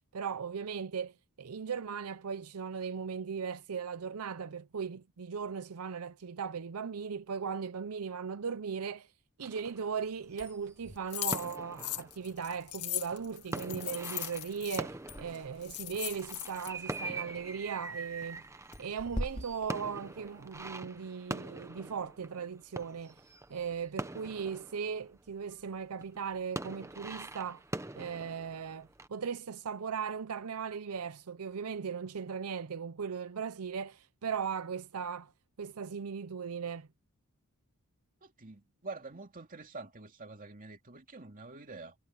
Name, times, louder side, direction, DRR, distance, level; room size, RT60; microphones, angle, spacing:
voice 1, 0.1-9.1 9.4-18.4 18.8-23.2 23.5-27.6 28.0-35.3 35.6-36.9, right 6 dB, 75° right, 0.6 m, -38 dB
sound 1, 9.4-25.6 25.9-29.1, right 2 dB, 15° right, 0.9 m, -44 dB
sound 2, 10.2-20.7, equal, 30° left, 3.2 m, -47 dB
sound 3, 11.1-14.8 15.3-15.4 15.6-16.7, left 15 dB, 85° left, 1.9 m, -38 dB
voice 2, 38.2-42.0, right 3 dB, 40° right, 2.4 m, -46 dB
head